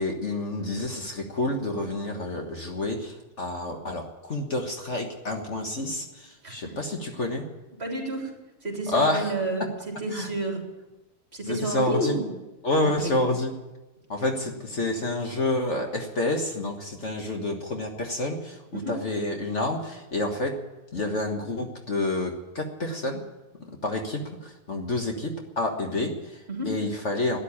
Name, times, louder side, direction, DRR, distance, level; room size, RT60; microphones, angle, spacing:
voice 1, 0.0-7.4 8.9-9.3 10.1-10.3 11.5-12.1 12.6-13.5 14.1-20.5 20.9-23.2 23.8-27.4, left 2 dB, 45° left, 2 dB, 1.8 m, -29 dB
voice 2, 7.8-8.3 8.6-9.7 10.0-10.6 11.3-12.3 12.8-13.1 18.7-18.9 26.5-26.7, right 2 dB, 40° right, 0 dB, 3.5 m, -30 dB
13.5 x 10.0 x 9.9 m, 1.1 s
omnidirectional pair, 1.7 m